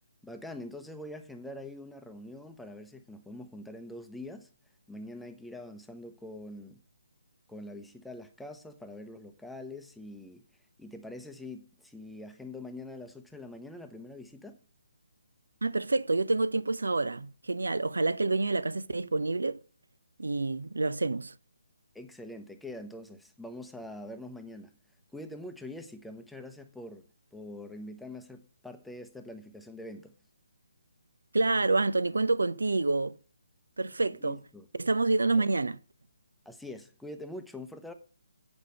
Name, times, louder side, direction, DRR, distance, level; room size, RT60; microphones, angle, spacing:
voice 1, 0.2-4.5 4.9-6.8 7.5-10.4 10.8-14.6 21.9-24.7 25.1-30.1 34.2-34.7 35.3-35.5 36.4-37.9, left 1 dB, ahead, 0.8 m, -44 dB
voice 2, 15.6-19.6 20.2-21.3 31.3-33.2 33.8-34.4 34.7-35.8, right 3 dB, 70° right, 0.7 m, -28 dB
8.3 x 5.3 x 7.7 m
figure-of-eight pair, 145°, 0 cm